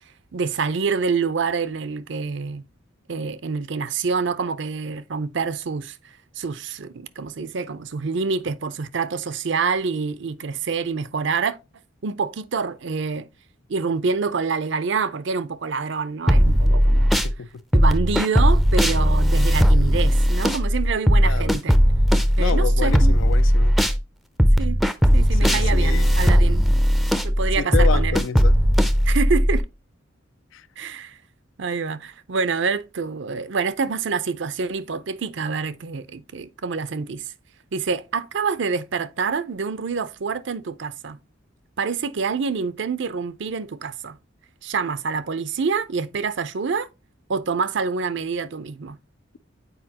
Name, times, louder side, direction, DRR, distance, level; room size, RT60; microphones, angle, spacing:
voice 1, 0.3-2.6 3.1-6.0 6.4-11.6 12.0-13.3 13.7-17.2 17.7-21.8 22.4-23.1 24.6-24.8 25.1-26.7 27.2-28.2 29.1-29.6 30.8-31.2 31.6-37.3 37.7-41.2 41.8-44.2 44.6-46.9 47.3-49.0, right 5 dB, 65° right, 0.6 m, -26 dB
sound 1, 16.3-17.3 17.7-24.0 24.4-29.6, equal, ahead, 0.4 m, -17 dB
voice 2, 21.2-21.6 22.4-23.7 25.4-26.3 27.6-28.6 30.5-30.6, left 6 dB, 75° left, 0.4 m, -29 dB
8.0 x 4.7 x 2.8 m
head